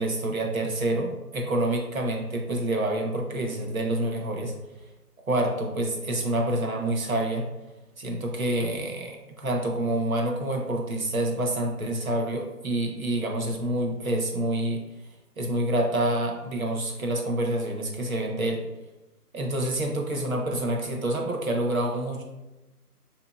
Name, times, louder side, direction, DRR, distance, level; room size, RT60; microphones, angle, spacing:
voice 1, 0.0-4.5 5.3-7.4 8.0-14.8 15.4-18.6 19.3-22.2, right 1 dB, 60° right, 1 dB, 0.9 m, -27 dB
4.7 x 2.9 x 2.3 m, 1.0 s
figure-of-eight pair, 175°, 47 cm